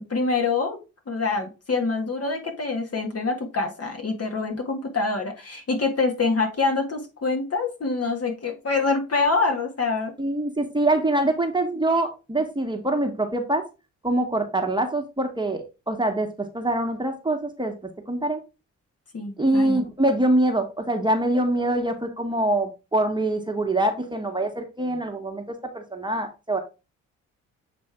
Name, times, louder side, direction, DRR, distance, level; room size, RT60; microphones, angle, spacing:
voice 1, 0.1-0.8 1.1-10.1 19.1-19.8, left 4 dB, 45° left, 3 dB, 2.1 m, -25 dB
voice 2, 10.2-13.6 14.0-17.7 18.1-18.4 19.4-25.4 25.7-26.6, right 1 dB, 15° right, 3 dB, 1.6 m, -24 dB
7.9 x 3.3 x 3.7 m, 0.29 s
supercardioid pair, 50°, 35 cm